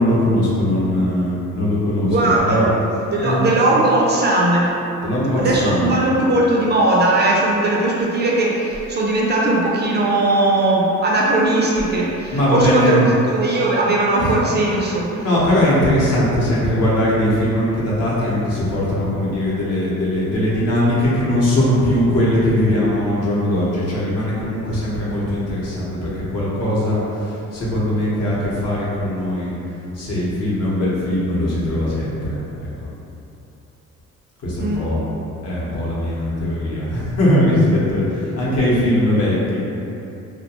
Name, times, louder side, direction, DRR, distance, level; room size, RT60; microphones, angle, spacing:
voice 1, 0.0-2.7 3.2-3.5 5.0-6.0 12.3-13.1 14.2-14.4 15.2-29.5 29.9-32.9 34.4-35.0 35.4-39.6, left 1 dB, 55° left, -7 dB, 0.8 m, -20 dB
voice 2, 2.0-2.7 3.1-4.7 5.4-15.3 34.6-34.9, right 2 dB, 35° right, -4 dB, 0.4 m, -18 dB
2.3 x 2.1 x 2.9 m, 2.9 s
cardioid pair, 90°, 30 cm